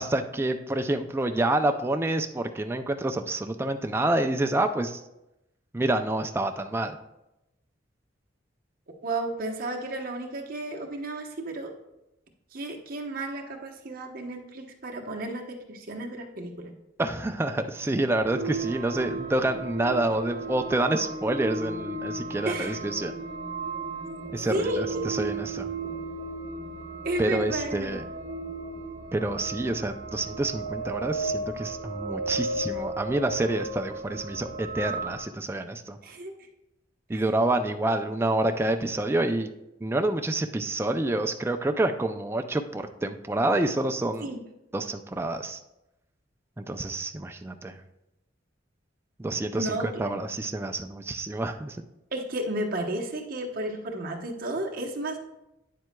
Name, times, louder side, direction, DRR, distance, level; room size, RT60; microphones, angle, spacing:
voice 1, 0.0-5.0 5.7-7.0 17.0-23.1 24.3-25.7 27.2-28.0 29.1-36.0 37.1-39.5 39.8-44.3 44.7-45.6 46.6-47.8 49.2-51.8, right 2 dB, 15° right, 6 dB, 0.3 m, -28 dB
voice 2, 9.0-11.7 12.5-16.7 22.4-22.8 24.5-25.0 27.0-28.0 36.0-36.3 37.1-37.2 44.2-44.4 49.5-50.2 52.1-55.2, right 1 dB, 50° right, 1 dB, 0.9 m, -32 dB
sound 1, 18.1-35.2, right 2 dB, 80° right, 1.0 m, -35 dB
9.2 x 7.5 x 2.2 m, 0.90 s
head